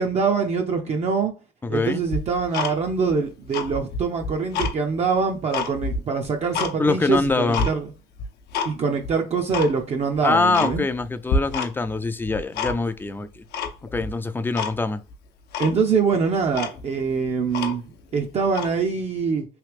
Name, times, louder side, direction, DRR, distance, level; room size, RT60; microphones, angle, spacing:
voice 1, 0.0-1.3 1.7-7.9 8.6-10.8 15.6-19.5, right 5 dB, 40° right, 0.5 m, -24 dB
voice 2, 1.6-2.0 6.8-7.7 10.2-13.4 13.9-15.0, left 3 dB, 10° left, 0.4 m, -24 dB
Tick-tock, 2.1-3.1 3.4-4.8 5.2-6.7 7.1-7.7 8.2-8.7 9.0-9.1 9.5-9.7 10.1-10.2 10.5-11.0 11.3-11.9 12.2-13.0 13.5-14.1 14.5-14.7 15.1-15.2 15.5-15.8 16.2-16.3 16.5-18.0 18.5-18.7, left 4 dB, 75° left, 0.7 m, -28 dB
3.2 x 2.8 x 3.2 m
cardioid pair, 110°, 17 cm